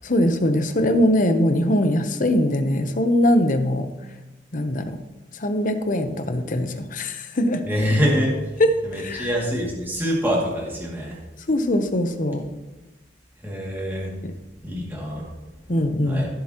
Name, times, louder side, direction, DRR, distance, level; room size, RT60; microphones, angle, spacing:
voice 1, 0.0-3.9 4.5-5.0 5.3-7.6 8.6-9.3 11.5-12.4 15.7-16.3, left 1 dB, 45° left, 8 dB, 0.8 m, -21 dB
voice 2, 7.6-11.2 13.4-14.1 14.6-15.3 16.1-16.3, equal, 10° right, -4 dB, 2.3 m, -25 dB
15.0 x 7.6 x 3.0 m, 1.1 s
head